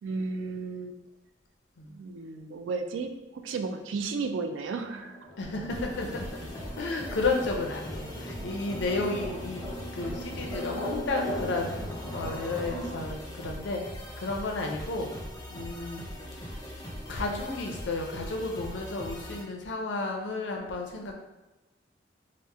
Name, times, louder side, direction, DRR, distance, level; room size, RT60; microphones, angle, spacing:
voice 1, 0.0-1.0 1.9-5.2, right 4 dB, 75° right, 7 dB, 0.3 m, -34 dB
sound 1, 4.9-12.9, equal, 20° right, 0.7 m, -39 dB
voice 2, 5.4-6.3 6.8-9.7 9.9-15.2 15.5-16.0 17.1-21.1, left 3 dB, 65° left, 1 dB, 0.5 m, -32 dB
sound 2, 5.7-19.4, equal, 20° left, 0.5 m, -41 dB
2.9 x 2.1 x 3.4 m, 1.0 s
head